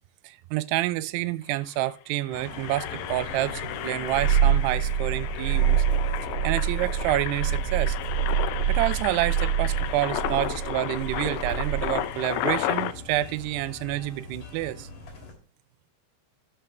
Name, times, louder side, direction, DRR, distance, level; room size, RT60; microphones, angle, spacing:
voice 1, 0.2-5.8 6.4-8.0 8.7-14.9, right 16 dB, 80° right, 2.6 m, -28 dB
Engine, 1.2-1.3 1.5-1.8 2.2-12.9, left 13 dB, 85° left, 3.0 m, -33 dB
sound 1, 2.3-15.3, left 3 dB, 55° left, 4.3 m, -42 dB
Purr, 4.0-12.1, right 9 dB, 65° right, 2.2 m, -26 dB
13.0 x 7.5 x 3.4 m
omnidirectional pair, 4.9 m